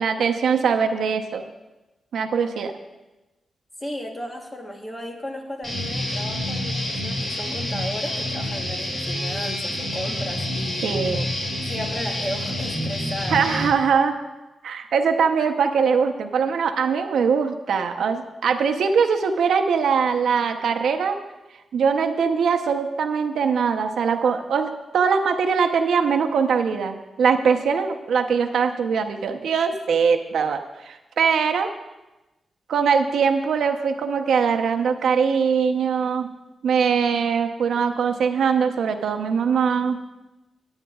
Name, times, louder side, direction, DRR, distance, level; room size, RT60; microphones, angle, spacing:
voice 1, 0.0-1.4 2.1-2.7 10.8-11.3 13.3-14.1 14.6-21.2 21.7-31.7 32.7-36.3 36.6-40.0, right 6 dB, 80° right, 5 dB, 0.8 m, -22 dB
voice 2, 3.8-10.9 11.6-13.7, equal, 15° left, 1 dB, 1.2 m, -34 dB
Guitar, 5.6-13.7, left 1 dB, 40° left, 2.4 m, -28 dB
19.5 x 8.9 x 2.4 m, 1.0 s
wide cardioid pair, 170°, 0 cm